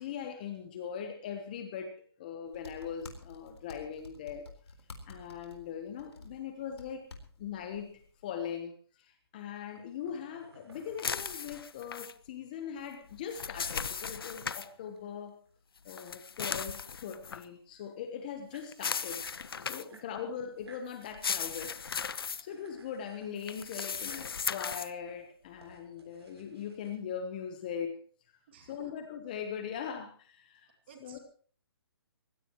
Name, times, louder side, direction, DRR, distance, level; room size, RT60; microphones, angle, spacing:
voice 1, 0.0-4.5 5.1-7.1 7.4-15.4 15.8-19.3 19.6-21.8 22.4-28.0 28.6-31.2, left 7 dB, 20° left, 7 dB, 1.1 m, -40 dB
sound 1, 2.5-8.5, left 3 dB, 85° left, 4.2 m, -51 dB
sound 2, 9.6-12.1 13.9-16.0 16.3-17.5 18.1-18.2 18.3-19.4 19.8-20.9 21.4-21.8 22.1-23.4 23.9-24.3 24.9-27.0, right 3 dB, 75° right, 6.8 m, -60 dB
sound 3, 11.0-12.1 13.1-14.7 15.9-17.4 18.7-20.0 21.0-22.4 23.4-24.9, left 6 dB, 60° left, 1.0 m, -37 dB
voice 2, 19.9-20.3 28.5-28.9 30.9-31.2, right 5 dB, 25° right, 5 dB, 2.3 m, -54 dB
23.5 x 17.0 x 3.1 m, 0.42 s
hypercardioid pair, 175°, 14 cm